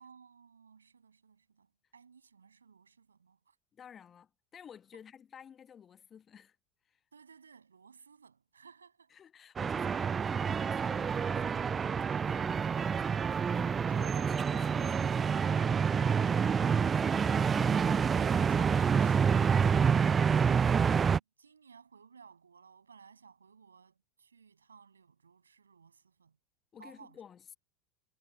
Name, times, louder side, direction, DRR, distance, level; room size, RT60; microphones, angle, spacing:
voice 1, 0.0-3.6 7.1-9.2 13.9-16.7 18.1-26.4 26.8-27.2, right 6 dB, 85° right, 7.6 m, -57 dB
voice 2, 3.7-6.6 6.8-7.0 9.1-15.1 16.2-18.2 26.7-27.5, left 8 dB, 30° left, 1.6 m, -53 dB
sound 1, 9.6-21.2, right 6 dB, 25° right, 0.3 m, -28 dB
figure-of-eight pair, 75°, 0 cm